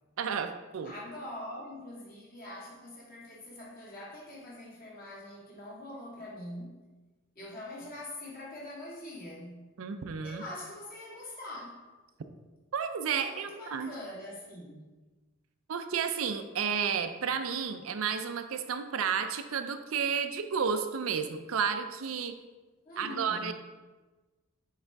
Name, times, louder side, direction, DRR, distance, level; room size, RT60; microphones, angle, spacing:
voice 1, 0.2-0.9 9.8-10.4 12.7-13.9 15.7-22.3 23.0-23.5, right 6 dB, 80° right, 8 dB, 0.5 m, -32 dB
voice 2, 0.8-6.8 7.4-9.7 10.2-11.9 13.2-14.9 22.8-23.5, left 1 dB, 45° left, -6 dB, 1.9 m, -43 dB
6.5 x 4.8 x 3.5 m, 1.2 s
head